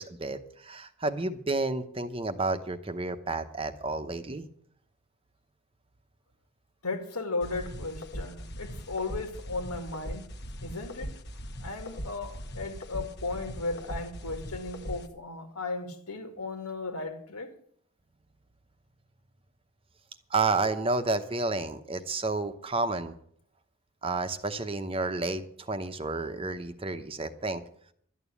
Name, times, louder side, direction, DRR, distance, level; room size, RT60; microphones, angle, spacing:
voice 1, 0.0-4.5 20.3-23.2 24.0-27.6, right 3 dB, 25° right, 0.9 m, -31 dB
voice 2, 6.8-10.3 10.6-11.2 11.6-17.5, left 3 dB, 90° left, 2.2 m, -36 dB
sound 1, 7.4-15.1, equal, 50° left, 1.1 m, -40 dB
12.5 x 9.1 x 8.3 m
head